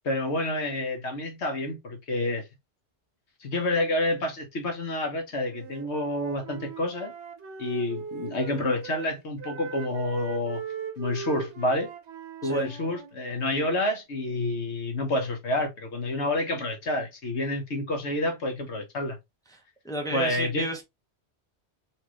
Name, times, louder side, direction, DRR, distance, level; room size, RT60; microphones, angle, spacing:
voice 1, 0.0-2.4 3.4-7.1 7.6-10.6 11.0-11.9 12.4-19.2 20.1-20.7, left 1 dB, 75° left, 1.4 m, -28 dB
Wind instrument woodwind instrument, 5.4-9.1 9.4-13.8, right 7 dB, 80° right, 1.2 m, -40 dB
voice 2, 19.8-20.8, right 2 dB, 5° left, 0.9 m, -32 dB
4.3 x 2.9 x 3.0 m
omnidirectional pair, 1.2 m